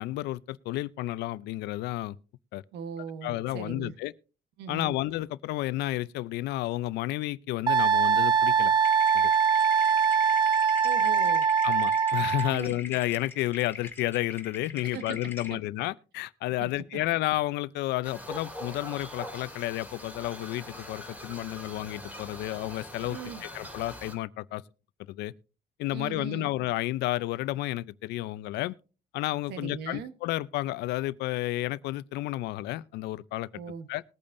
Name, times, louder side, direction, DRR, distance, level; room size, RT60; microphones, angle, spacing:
voice 1, 0.0-2.2 2.5-2.6 3.2-4.1 4.7-8.7 9.1-9.3 11.6-24.6 25.1-25.3 25.8-28.7 29.1-33.5 33.9-34.0, left 16 dB, 85° left, 0.5 m, -31 dB
voice 2, 2.7-4.0 4.6-5.0 10.8-11.5 12.5-12.8 14.8-15.2 15.5-15.6 16.6-17.0 23.1-23.4 25.9-26.5 29.5-30.1 33.5-33.9, right 7 dB, 80° right, 1.1 m, -39 dB
Wind instrument woodwind instrument, 7.7-12.5, right 6 dB, 25° right, 0.7 m, -23 dB
sound 1, 8.8-15.5, left 4 dB, 15° left, 2.3 m, -43 dB
sound 2, 18.0-24.2, equal, 10° right, 2.8 m, -42 dB
20.5 x 8.7 x 2.6 m
cardioid pair, 110°, 17 cm